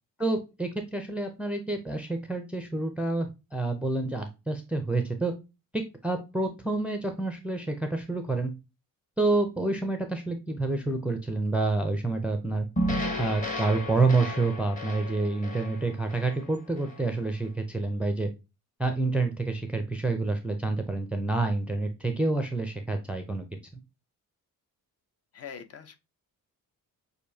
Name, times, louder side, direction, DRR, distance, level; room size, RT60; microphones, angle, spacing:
voice 1, 0.2-5.3 5.7-8.5 9.2-12.7 13.2-18.3 18.8-23.5, right 3 dB, 5° right, 0.4 m, -28 dB
sound 1, 12.8-17.1, equal, 20° left, 1.1 m, -33 dB
voice 2, 25.3-26.0, left 7 dB, 45° left, 0.7 m, -42 dB
6.5 x 2.6 x 2.7 m
wide cardioid pair, 170°, 35 cm